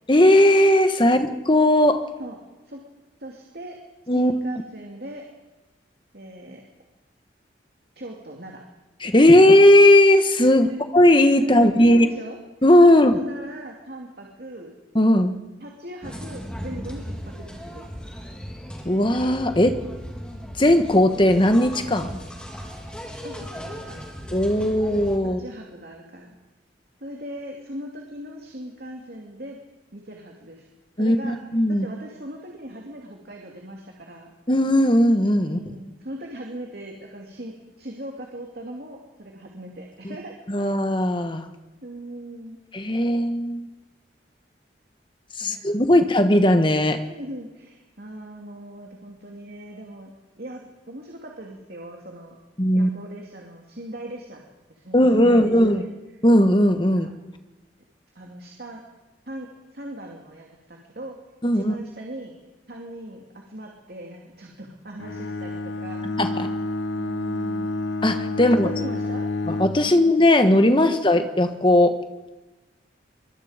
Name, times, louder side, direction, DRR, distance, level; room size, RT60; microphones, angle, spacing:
voice 1, 0.1-2.1 4.1-4.3 9.0-10.7 10.9-12.1 12.6-13.2 14.9-15.4 18.8-19.8 20.6-22.2 24.3-25.4 31.0-31.9 34.5-35.6 40.5-41.5 42.7-43.7 45.4-47.0 52.6-52.9 54.9-55.8 56.2-57.1 61.4-61.7 66.2-66.5 68.0-68.7 69.5-72.0, left 1 dB, 25° left, 8 dB, 1.5 m, -17 dB
voice 2, 3.2-3.8 4.1-5.2 6.1-6.6 8.0-8.6 10.5-10.8 11.4-12.4 12.9-14.7 15.6-17.8 19.5-19.6 23.2-24.0 25.2-26.4 27.0-29.6 29.9-30.7 31.0-31.4 31.7-34.3 35.4-40.7 41.8-42.6 45.4-46.0 47.1-50.1 50.4-52.4 52.7-54.4 54.7-55.9 57.0-57.1 58.1-58.8 59.3-61.2 61.5-62.3 62.7-66.0 66.9-67.8 68.4-69.3 69.8-70.1, right 1 dB, 55° right, 0 dB, 2.8 m, -39 dB
sound 1, 16.0-25.2, equal, 5° left, 3.4 m, -36 dB
Bowed string instrument, 65.0-69.9, left 2 dB, 80° left, 0.9 m, -29 dB
25.0 x 23.0 x 5.2 m, 1.1 s
head